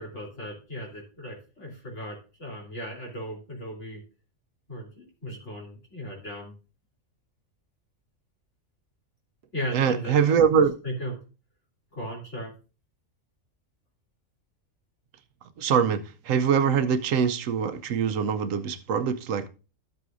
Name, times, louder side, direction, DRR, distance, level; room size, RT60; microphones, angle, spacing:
voice 1, 0.0-4.0 4.7-6.5 9.5-10.4 10.8-11.1 11.9-12.5, equal, 65° left, 3.7 m, -36 dB
voice 2, 9.7-10.7 15.6-19.5, right 7 dB, 80° right, 1.1 m, -23 dB
13.5 x 7.8 x 2.6 m
omnidirectional pair, 1.3 m